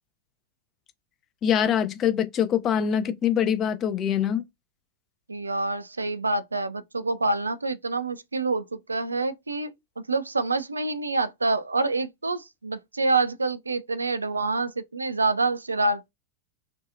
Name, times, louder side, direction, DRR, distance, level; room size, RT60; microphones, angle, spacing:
voice 1, 1.4-4.4, left 9 dB, 30° left, 0.4 m, -24 dB
voice 2, 5.3-9.7 10.1-16.1, right 3 dB, 80° right, 0.3 m, -27 dB
2.7 x 2.3 x 2.4 m
figure-of-eight pair, 90°, 0 cm